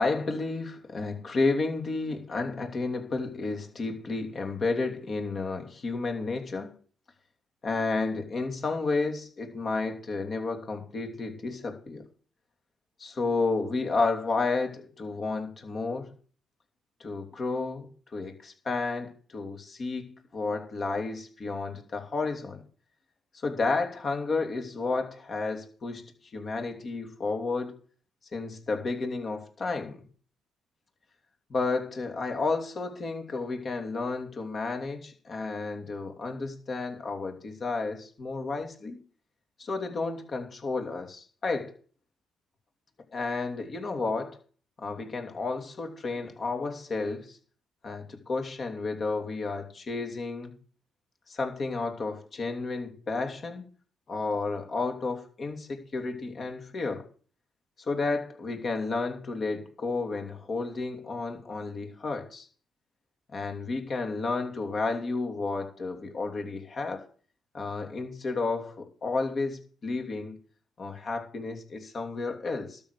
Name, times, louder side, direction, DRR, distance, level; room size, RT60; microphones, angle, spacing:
voice 1, 0.0-6.8 7.6-12.0 13.0-16.1 17.0-22.6 23.3-27.8 28.3-30.0 31.5-39.0 39.6-41.7 43.1-44.4 44.8-47.4 47.8-50.6 51.3-53.6 54.1-57.1 57.8-62.5 63.3-67.0 67.5-70.4 70.8-72.8, left 3 dB, 45° left, 2.9 m, -31 dB
12.5 x 6.6 x 6.8 m
cardioid pair, 90°, 0 cm